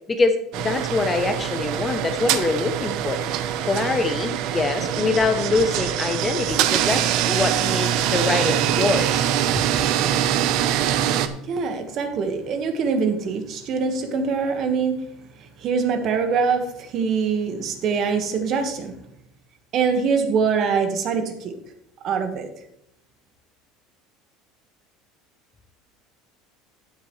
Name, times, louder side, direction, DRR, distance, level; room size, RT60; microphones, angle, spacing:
voice 1, 0.1-3.2 3.6-9.2, left 3 dB, 15° left, 8 dB, 0.7 m, -24 dB
sound 1, 0.5-11.3, right 11 dB, 50° right, 0.8 m, -23 dB
voice 2, 11.5-15.0 15.4-18.9 19.7-21.5 22.0-22.5, right 5 dB, 35° right, 6 dB, 1.4 m, -24 dB
13.0 x 9.4 x 3.1 m, 0.77 s
cardioid pair, 170°, 0 cm